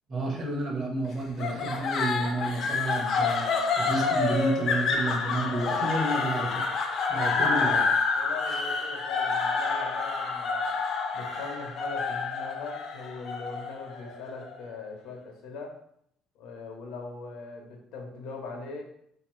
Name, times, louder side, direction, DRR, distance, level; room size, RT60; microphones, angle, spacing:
voice 1, 0.1-3.5 3.8-6.6 7.1-7.8 8.5-8.6, right 2 dB, 30° right, 0 dB, 0.7 m, -30 dB
sound 1, 1.4-14.6, left 4 dB, 40° left, 0.5 m, -28 dB
voice 2, 7.2-7.9 8.1-10.7 11.1-15.8 16.3-18.8, left 4 dB, 80° left, 1 dB, 0.9 m, -40 dB
3.7 x 2.8 x 3.1 m, 0.71 s
cardioid pair, 180°, 0 cm